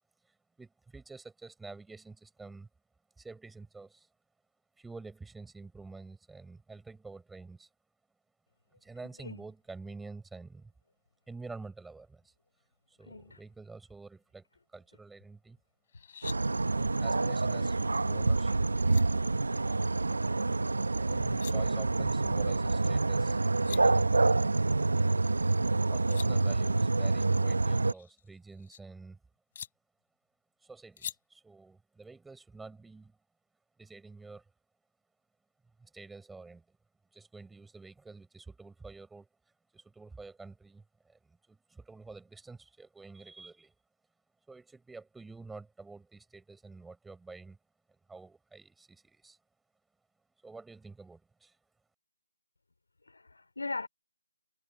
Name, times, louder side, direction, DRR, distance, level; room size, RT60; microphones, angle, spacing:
voice 1, 0.6-2.7 3.2-4.1 4.8-7.7 8.8-10.7 11.3-12.3 12.9-14.5 14.7-15.6 16.7-17.8 18.0-18.6 21.0-23.4 23.6-24.1 25.9-29.2 30.6-33.2 33.8-34.4 35.8-36.8 37.1-39.3 39.7-43.7 44.5-47.6 48.1-49.4 50.4-51.6, right 3 dB, 5° right, 7.1 m, -48 dB
voice 2, 13.0-13.4 53.0-53.9, left 3 dB, 70° left, 4.4 m, -39 dB
sound 1, 15.9-16.4 18.4-18.5 18.8-19.0 21.1-21.5 23.2-23.3 23.5-23.8 25.8-26.3 27.8-28.8 29.5-29.7 31.0-31.2, left 8 dB, 35° left, 4.8 m, -44 dB
sound 2, 16.2-27.9, right 3 dB, 70° right, 1.7 m, -27 dB
figure-of-eight pair, 155°, 0 cm